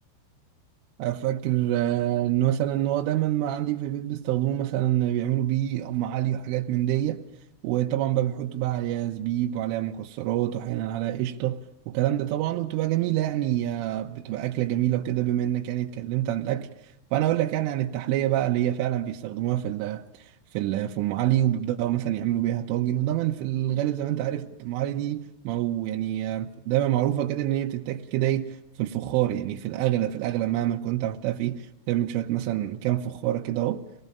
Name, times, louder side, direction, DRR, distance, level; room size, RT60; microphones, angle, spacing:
voice 1, 1.0-7.2 7.6-16.7 17.1-33.8, right 13 dB, 80° right, 3.4 m, -26 dB
25.5 x 19.5 x 6.7 m
omnidirectional pair, 5.8 m